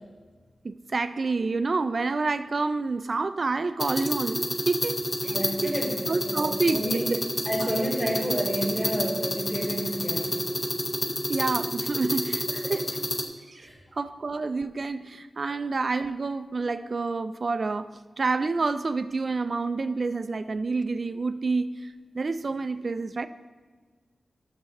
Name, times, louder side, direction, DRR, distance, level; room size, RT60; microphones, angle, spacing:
voice 1, 0.6-5.4 5.6-7.2 7.6-7.7 11.3-12.9 13.5-13.6 14.0-23.3, right 3 dB, 45° right, 0.3 m, -28 dB
sound 1, 3.8-13.2, left 1 dB, 30° left, 0.7 m, -29 dB
voice 2, 5.2-7.1 7.5-10.5 12.6-12.7 13.6-13.8, right 1 dB, 5° left, 1.7 m, -30 dB
12.5 x 6.8 x 3.0 m
wide cardioid pair, 140°, 0 cm